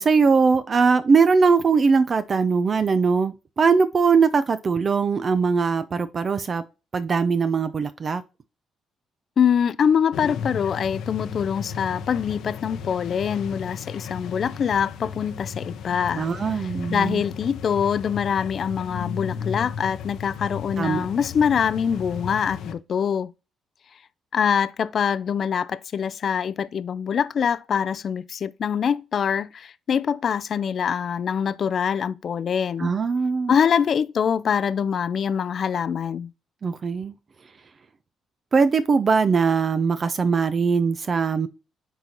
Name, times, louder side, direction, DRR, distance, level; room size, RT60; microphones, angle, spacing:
voice 1, 0.0-6.6 6.9-8.2 16.1-17.2 20.8-21.1 32.8-33.5 36.6-37.1 38.5-41.5, right 5 dB, 40° right, 0.5 m, -21 dB
voice 2, 9.4-16.3 16.9-23.3 24.3-32.9 33.5-36.3, left 7 dB, 55° left, 0.4 m, -24 dB
sound 1, 10.1-22.7, left 6 dB, 80° left, 0.8 m, -35 dB
9.2 x 4.0 x 2.9 m
cardioid pair, 90°, 0 cm